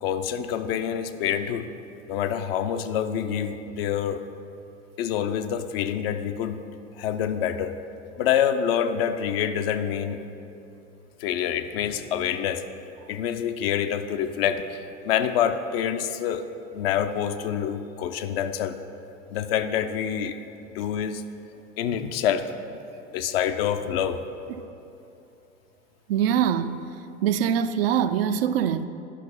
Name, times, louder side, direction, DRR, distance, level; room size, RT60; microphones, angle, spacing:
voice 1, 0.0-1.7 2.1-4.2 5.0-6.6 7.0-7.7 8.2-10.2 11.2-12.6 13.1-14.8 15.0-16.5 16.7-18.8 19.3-20.4 20.7-21.2 21.8-22.5 23.1-24.2, left 9 dB, 55° left, 0.6 m, -26 dB
voice 2, 26.1-26.8 27.2-28.9, right 9 dB, 55° right, 0.4 m, -23 dB
11.0 x 5.9 x 5.5 m
figure-of-eight pair, 75°, 36 cm